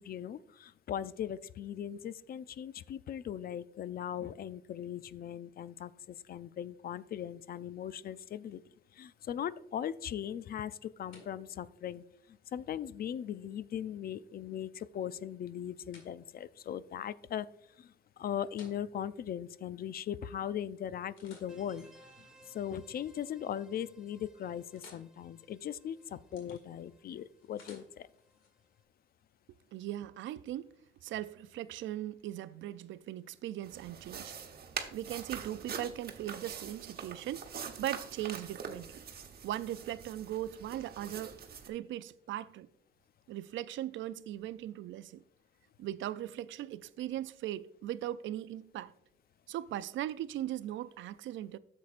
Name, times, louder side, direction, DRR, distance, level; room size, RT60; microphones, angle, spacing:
voice 1, 0.0-8.6 8.9-17.5 17.8-21.9 22.2-28.1, left 9 dB, 50° left, 0.4 m, -39 dB
sound 1, 10.4-20.4 20.9-23.1 23.5-23.9 24.2-28.5, left 3 dB, 85° left, 1.9 m, -62 dB
sound 2, 21.4-28.8, right 1 dB, 5° right, 2.3 m, -63 dB
voice 2, 29.7-30.7 31.0-34.4 34.9-39.0 39.4-41.4 41.6-42.7 43.3-45.2 45.8-48.9 49.5-51.6, right 13 dB, 75° right, 0.4 m, -39 dB
sound 3, 33.6-41.7, right 6 dB, 50° right, 1.1 m, -44 dB
10.0 x 7.3 x 2.5 m
cardioid pair, 90°, 20 cm